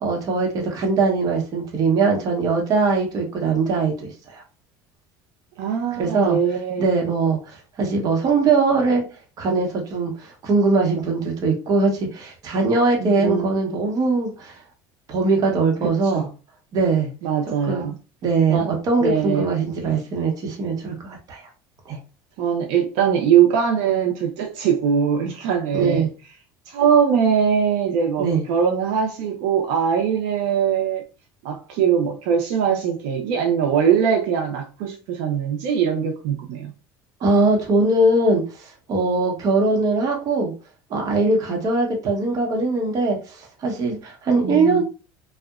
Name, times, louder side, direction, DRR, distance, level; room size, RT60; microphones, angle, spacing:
voice 1, 0.0-4.4 5.9-6.4 6.8-9.0 9.4-14.6 15.1-16.2 16.7-17.1 17.7-17.9 18.2-21.4 21.9-22.0 25.7-26.1 28.2-28.4 37.2-40.5 40.9-44.8, right 3 dB, 45° right, 0.8 m, -21 dB
voice 2, 5.6-6.9 13.0-13.5 16.1-16.3 17.2-18.0 18.5-18.7 19.0-19.5 22.4-26.1 26.7-31.0 31.4-36.7 44.4-44.8, right 7 dB, 80° right, 0.5 m, -21 dB
2.7 x 2.1 x 2.3 m
cardioid pair, 125°, 9 cm